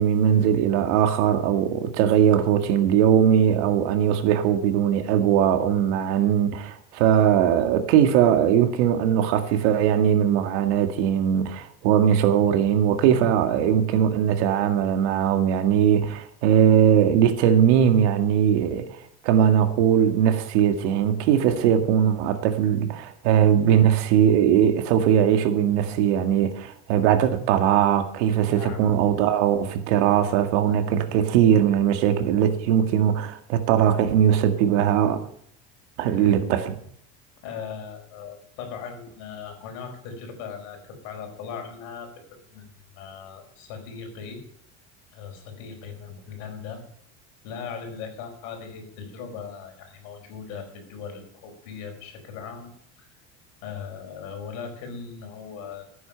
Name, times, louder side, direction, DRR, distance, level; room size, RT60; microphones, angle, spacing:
voice 1, 0.0-18.8 19.2-35.2 36.0-36.8, right 9 dB, 85° right, 2.0 m, -20 dB
voice 2, 28.4-28.8 36.1-36.3 37.4-44.4 45.1-46.8 47.4-52.7 53.6-56.1, left 6 dB, 65° left, 5.1 m, -39 dB
15.0 x 9.4 x 5.8 m
cardioid pair, 170°, 34 cm